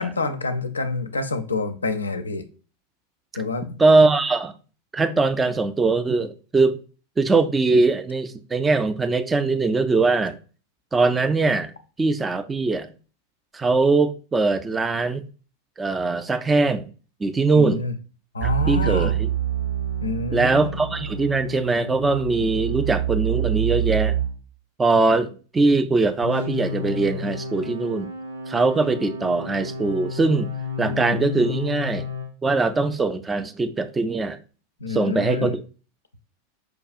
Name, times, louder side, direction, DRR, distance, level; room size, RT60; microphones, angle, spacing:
voice 1, 0.0-2.5 3.3-3.8 17.5-17.9 18.3-19.1 20.0-20.8 34.8-35.5, left 3 dB, 75° left, 0.4 m, -27 dB
voice 2, 3.8-4.5 4.9-6.8 7.2-10.4 10.9-11.7 12.0-12.9 13.5-15.2 15.8-16.9 17.2-17.8 18.4-19.3 20.3-24.2 24.8-28.1 28.5-30.5 30.8-32.1 32.4-34.4 34.9-35.6, right 3 dB, 15° right, 0.3 m, -21 dB
sound 1, 18.4-24.3 26.2-32.3, right 5 dB, 80° right, 0.9 m, -28 dB
4.6 x 2.3 x 2.4 m
figure-of-eight pair, 90°, 0 cm